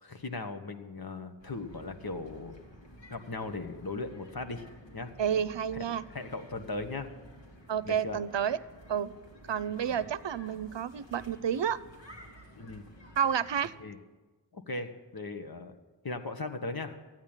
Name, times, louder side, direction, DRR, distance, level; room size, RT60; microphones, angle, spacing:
voice 1, 0.0-2.6 3.1-4.6 4.9-5.1 5.8-7.1 7.8-8.2 9.9-10.0 12.6-12.9 13.8-14.0 14.5-15.7 16.0-17.0, left 3 dB, 55° left, 8 dB, 1.3 m, -38 dB
sound 1, 1.4-13.7, equal, 90° left, 2.4 m, -53 dB
voice 2, 5.2-6.0 7.7-8.6 8.9-9.2 9.5-11.8 13.2-13.7, right 8 dB, 80° right, 18 dB, 0.6 m, -30 dB
14.5 x 9.5 x 8.9 m, 1.3 s
wide cardioid pair, 50°, 43 cm